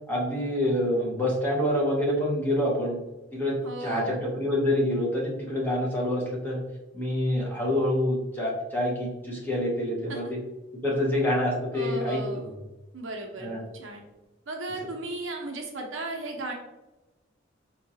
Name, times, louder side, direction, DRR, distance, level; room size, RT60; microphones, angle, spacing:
voice 1, 0.1-3.0 3.3-6.6 6.9-10.4 10.8-12.5 13.4-13.6, left 1 dB, 10° left, -4 dB, 0.9 m, -27 dB
voice 2, 3.6-4.2 10.1-10.3 11.7-12.6 12.9-14.0 14.5-16.5, right 2 dB, 70° right, 1 dB, 0.8 m, -36 dB
4.6 x 2.4 x 2.8 m, 1.1 s
head